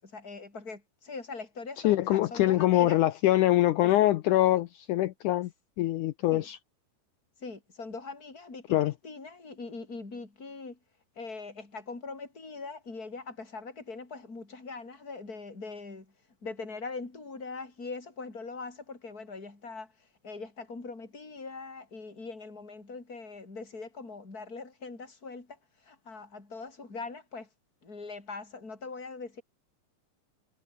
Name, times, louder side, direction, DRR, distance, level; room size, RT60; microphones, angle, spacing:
voice 1, 0.0-3.0 3.8-4.4 6.3-6.5 7.4-10.8 11.2-16.1 16.4-27.5 27.8-29.4, left 4 dB, 25° left, 5.9 m, -42 dB
voice 2, 1.8-5.5 5.8-6.6 8.7-8.9, left 15 dB, 75° left, 1.8 m, -24 dB
omnidirectional pair, 4.3 m